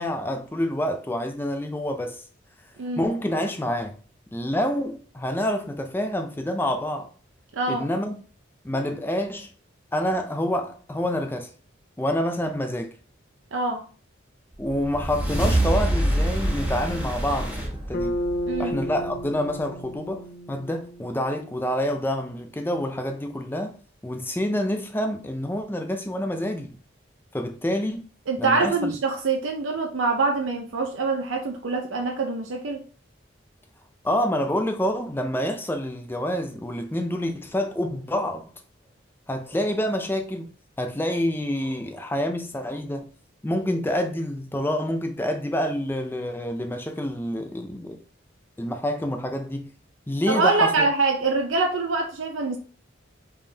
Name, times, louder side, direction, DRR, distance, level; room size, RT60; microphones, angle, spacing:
voice 1, 0.0-2.2 3.0-4.0 4.3-7.1 7.7-8.2 8.6-9.5 9.9-11.5 12.0-13.0 14.6-18.2 18.6-23.7 24.0-26.8 27.3-28.0 28.4-28.9 34.0-38.5 39.3-40.5 40.8-43.0 43.4-48.0 48.6-49.7 50.1-50.9, left 1 dB, 10° left, 0.4 m, -27 dB
voice 2, 7.5-7.9 13.5-13.9 18.5-18.8 28.3-32.8 50.3-52.6, right 3 dB, 90° right, 0.6 m, -24 dB
sound 1, 14.6-19.2, right 1 dB, 10° right, 1.0 m, -26 dB
Bass guitar, 17.9-22.0, equal, 45° left, 0.8 m, -33 dB
5.2 x 3.7 x 2.8 m
head